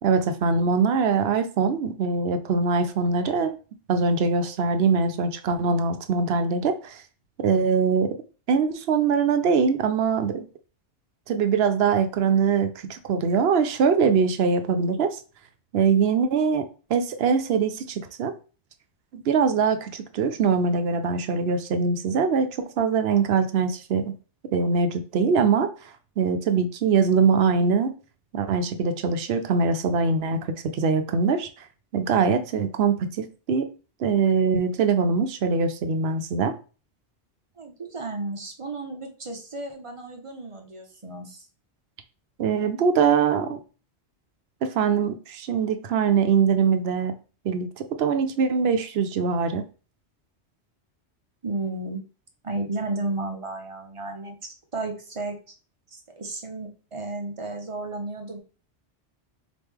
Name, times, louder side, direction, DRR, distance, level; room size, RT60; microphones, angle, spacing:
voice 1, 0.0-3.6 3.9-7.0 7.4-8.1 8.5-10.5 11.3-15.2 15.7-16.6 16.9-18.3 19.1-24.1 24.5-25.7 26.2-27.9 28.3-31.5 31.9-33.7 34.0-36.5 42.4-43.6 44.6-47.1 47.4-49.6, right 5 dB, 65° right, 8 dB, 0.8 m, -22 dB
voice 2, 37.6-41.4 51.4-52.0 52.4-54.4 54.7-55.4 55.9-58.4, right 2 dB, 35° right, 3 dB, 0.6 m, -33 dB
4.1 x 3.1 x 3.5 m, 0.36 s
omnidirectional pair, 1.2 m